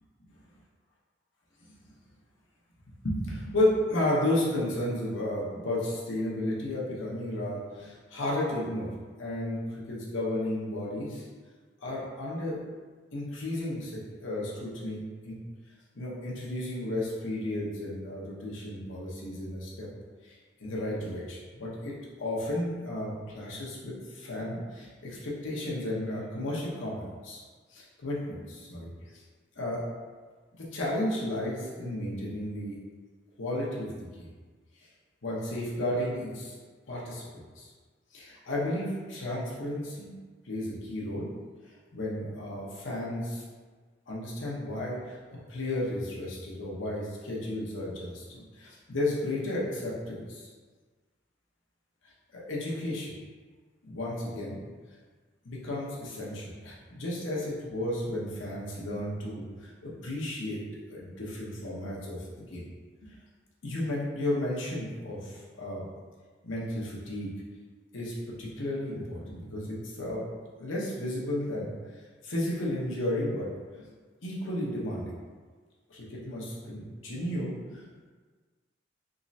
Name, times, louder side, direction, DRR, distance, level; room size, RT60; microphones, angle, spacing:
voice 1, 3.0-8.9 9.2-11.2 11.8-12.6 13.1-15.3 15.9-19.9 20.2-27.4 27.7-28.9 29.6-29.8 30.6-32.8 33.4-34.3 35.2-36.5 36.9-37.2 37.6-37.7 38.1-40.1 40.4-41.3 41.9-43.4 44.1-45.2 45.5-50.5 52.3-53.1 53.8-54.6 55.4-60.6 60.9-62.2 62.5-62.6 63.0-63.2 63.6-65.8 66.4-67.3 67.9-70.3 70.6-71.7 72.2-73.5 74.2-75.1 75.9-78.1, left 1 dB, 90° left, -5 dB, 0.9 m, -33 dB
3.7 x 3.1 x 2.7 m, 1.4 s
head